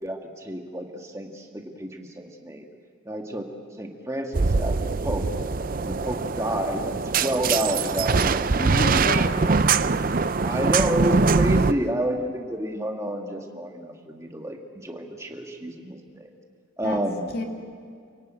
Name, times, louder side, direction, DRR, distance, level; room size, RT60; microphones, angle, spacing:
voice 1, 0.0-2.7 3.1-3.5 3.8-5.3 5.8-8.5 8.9-9.1 9.4-9.6 10.4-16.3 16.8-17.2, right 1 dB, 15° right, 2 dB, 2.0 m, -30 dB
sound 1, 4.3-11.7, right 4 dB, 45° right, 0.5 m, -23 dB
voice 2, 8.6-9.5 11.5-11.8 16.8-17.0 17.3-17.4, left 1 dB, 50° left, 2 dB, 2.6 m, -30 dB
29.0 x 17.5 x 9.2 m, 2.1 s
head